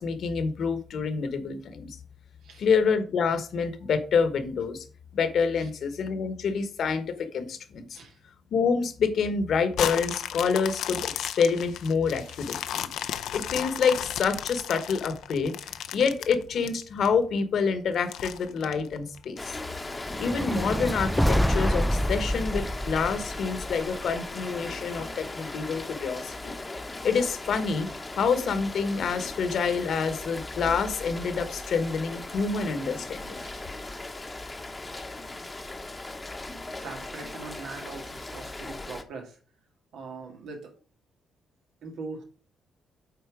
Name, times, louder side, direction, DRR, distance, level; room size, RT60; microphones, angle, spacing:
voice 1, 0.0-2.0 2.6-4.8 5.1-8.0 8.5-12.9 13.3-15.6 15.9-19.5 20.2-26.5 27.0-27.9 28.2-33.4, left 5 dB, 65° left, 10 dB, 1.2 m, -27 dB
sound 1, 9.7-17.1 17.5-17.6 18.1-19.4 19.9-20.0, left 10 dB, 85° left, 0.6 m, -34 dB
Rain, 19.4-39.0, left 2 dB, 15° left, 0.9 m, -38 dB
sound 2, 20.1-24.3, equal, ahead, 0.4 m, -27 dB
voice 2, 36.7-39.4 39.9-40.7 41.8-42.2, right 4 dB, 80° right, 3 dB, 2.0 m, -42 dB
8.0 x 4.3 x 4.9 m, 0.38 s
cardioid pair, 105°, 0 cm